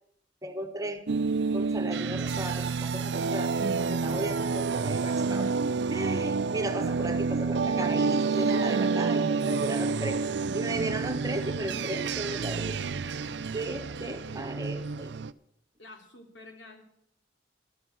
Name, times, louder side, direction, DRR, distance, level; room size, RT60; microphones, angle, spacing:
voice 1, 0.4-1.1 1.5-5.5 5.9-10.2 10.5-12.8 13.5-15.1, right 1 dB, 20° right, 7 dB, 1.3 m, -35 dB
sound 1, 1.1-15.3, right 4 dB, 65° right, 0.5 m, -29 dB
voice 2, 15.8-16.8, left 2 dB, 85° left, 3 dB, 3.3 m, -49 dB
13.5 x 13.0 x 6.1 m, 0.73 s
head